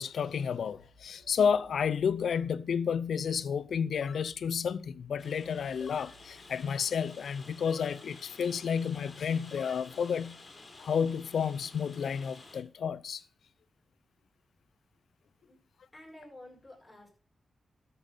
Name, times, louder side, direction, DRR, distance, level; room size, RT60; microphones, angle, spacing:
voice 1, 0.0-10.4 10.8-13.2, left 7 dB, 80° left, 0.6 m, -31 dB
sound 1, 0.7-6.7, right 2 dB, 65° right, 1.9 m, -63 dB
sound 2, 2.3-2.5 4.0-4.3 5.8-6.2 7.7-8.0 9.5-9.8, left 5 dB, 60° left, 1.1 m, -49 dB
Rain, 5.2-12.6, left 3 dB, 45° left, 3.1 m, -52 dB
voice 2, 15.9-17.1, left 1 dB, 15° left, 7.2 m, -51 dB
13.0 x 5.5 x 7.0 m
cardioid pair, 70°, 0 cm